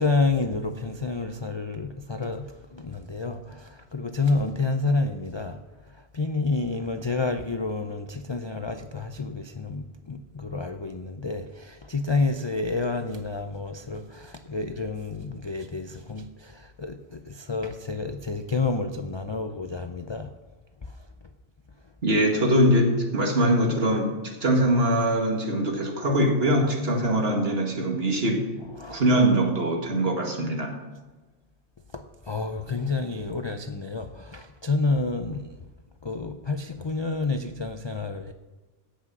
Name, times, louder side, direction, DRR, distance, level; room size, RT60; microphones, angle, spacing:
voice 1, 0.0-20.3 20.8-21.1 28.6-29.0 31.9-35.6 36.0-38.3, left 3 dB, 40° left, 7 dB, 0.4 m, -29 dB
voice 2, 22.0-24.1 24.4-28.4 28.9-30.8, right 1 dB, 55° right, 2 dB, 2.1 m, -22 dB
16.5 x 6.1 x 6.1 m, 1.2 s
omnidirectional pair, 1.3 m